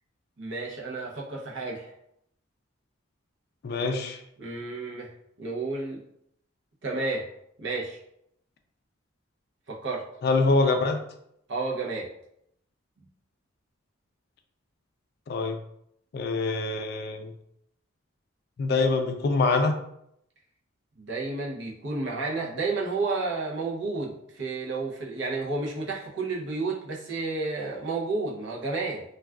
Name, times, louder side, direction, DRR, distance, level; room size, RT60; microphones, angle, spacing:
voice 1, 0.4-1.9 4.4-5.1 5.4-6.0 6.8-7.3 7.6-8.0 9.7-10.0 11.5-12.1 21.0-29.0, right 3 dB, 60° right, -2 dB, 0.6 m, -31 dB
voice 2, 3.6-4.2 10.2-11.0 15.3-15.6 16.1-17.3 18.6-19.8, left 3 dB, 50° left, 5 dB, 0.3 m, -24 dB
2.3 x 2.2 x 3.4 m, 0.75 s
head